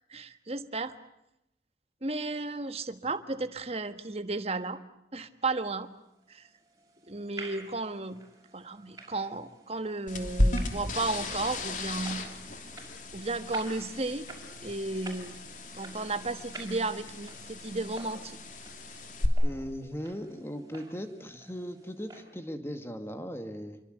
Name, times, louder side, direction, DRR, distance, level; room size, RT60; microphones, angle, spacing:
voice 1, 0.1-0.9 2.0-4.8 5.1-5.9 6.3-6.4 7.1-8.2 8.5-12.2 13.1-14.3 14.6-15.4 15.8-18.4, right 2 dB, 35° right, 10 dB, 1.5 m, -34 dB
sound 1, 6.2-22.2, right 3 dB, 20° right, 6.0 m, -50 dB
sound 2, 10.1-19.3, left 1 dB, 45° left, 3.2 m, -35 dB
voice 2, 19.4-23.8, equal, 15° left, 7 dB, 2.3 m, -38 dB
27.0 x 24.0 x 8.1 m, 0.84 s
head